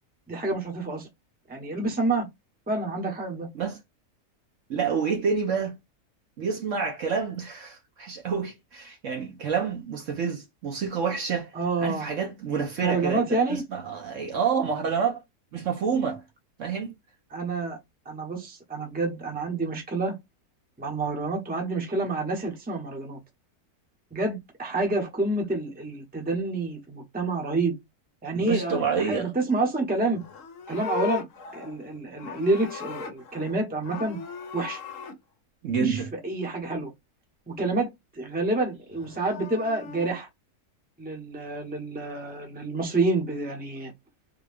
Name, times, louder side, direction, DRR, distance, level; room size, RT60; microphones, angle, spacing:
voice 1, 0.3-1.1 1.5-2.3 2.7-3.5 11.5-12.1 12.8-13.6 17.3-17.8 18.0-20.2 20.8-23.2 24.1-27.8 28.2-30.2 30.7-31.2 31.5-34.2 34.5-34.8 35.8-36.9 37.5-37.9 38.1-40.3 41.0-43.9, right 2 dB, 10° right, 0.7 m, -28 dB
voice 2, 4.7-5.7 6.4-11.5 11.8-13.2 13.7-15.2 15.5-16.2 16.6-16.9 28.3-29.3 35.6-36.1, right 6 dB, 60° right, 1.1 m, -28 dB
Livestock farm animals working animals, 30.1-33.6 33.8-35.2 38.9-40.1, left 7 dB, 65° left, 1.0 m, -37 dB
3.7 x 2.2 x 3.4 m
omnidirectional pair, 1.6 m